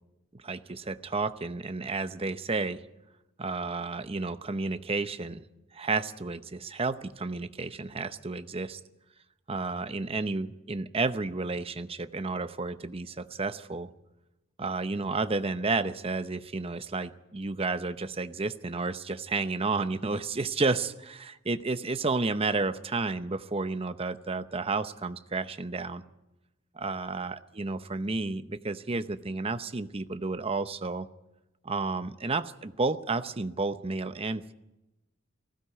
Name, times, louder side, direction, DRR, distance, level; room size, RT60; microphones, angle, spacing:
voice 1, 0.3-2.8 3.4-5.4 5.7-8.8 9.5-13.9 14.6-26.0 26.7-31.1 31.6-34.5, right 3 dB, 30° right, 11 dB, 0.7 m, -31 dB
19.5 x 16.0 x 8.3 m, 0.95 s
head